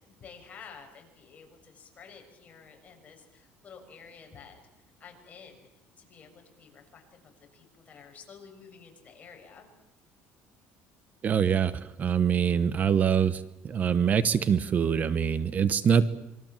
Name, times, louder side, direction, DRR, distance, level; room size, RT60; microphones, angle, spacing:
voice 1, 0.0-4.6 5.0-5.7 6.0-9.7, left 6 dB, 35° left, 3 dB, 7.1 m, -51 dB
voice 2, 11.2-16.1, right 7 dB, 35° right, 15 dB, 1.1 m, -24 dB
27.0 x 24.0 x 7.5 m, 0.89 s
cardioid pair, 125°, 5 cm